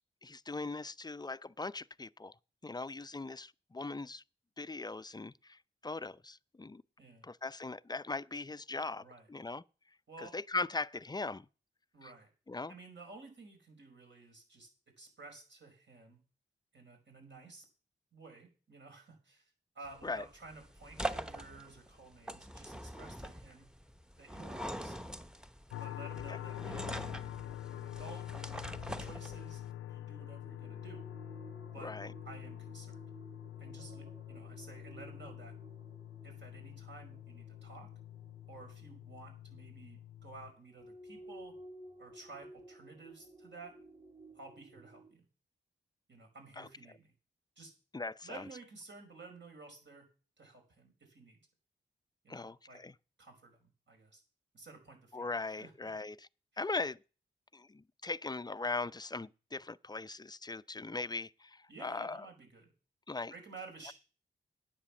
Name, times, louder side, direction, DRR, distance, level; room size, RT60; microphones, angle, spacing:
voice 1, 0.2-2.4 2.6-4.2 4.6-6.8 7.2-9.6 10.2-11.5 12.0-12.1 12.5-12.7 20.0-20.3 26.3-26.4 31.8-32.1 46.6-46.7 47.9-48.4 52.3-52.9 55.1-56.3 56.6-57.0 57.5-62.3 63.1-63.3, left 3 dB, 20° left, 0.5 m, -40 dB
voice 2, 11.9-12.3 12.7-14.7 15.0-16.2 16.7-17.7 18.1-23.7 24.2-25.1 25.8-26.9 27.4-31.0 31.7-31.9 32.2-33.1 33.6-35.5 36.2-37.9 38.5-41.5 42.0-43.7 44.3-45.2 46.1-47.1 47.6-47.7 48.2-50.1 50.4-51.4 52.2-52.8 53.2-54.2 54.5-55.3 55.6-55.7 61.7-62.7 63.3-63.9, right 3 dB, 60° right, 5.3 m, -53 dB
sound 1, 19.8-29.7, right 1 dB, 5° right, 1.0 m, -43 dB
sound 2, 25.7-40.5, left 13 dB, 85° left, 0.5 m, -46 dB
sound 3, 30.4-39.7 40.6-45.1, right 1 dB, 30° right, 5.2 m, -55 dB
9.9 x 8.5 x 7.2 m
supercardioid pair, 40°, 21 cm